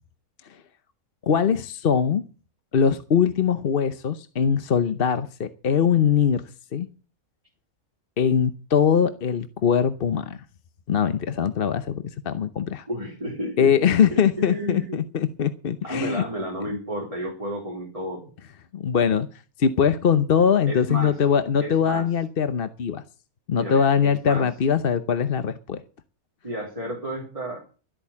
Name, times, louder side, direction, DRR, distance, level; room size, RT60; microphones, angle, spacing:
voice 1, 1.2-2.2 2.7-6.4 6.7-6.9 8.2-10.4 10.9-12.9 13.6-16.2 18.7-19.3 19.6-23.0 23.5-25.8, left 7 dB, 45° left, 11 dB, 0.9 m, -22 dB
voice 2, 12.9-15.0 15.8-18.3 20.7-21.1 21.6-22.1 23.5-24.5 26.4-27.7, equal, 20° right, -2 dB, 3.6 m, -32 dB
13.0 x 8.6 x 8.4 m, 0.37 s
omnidirectional pair, 1.6 m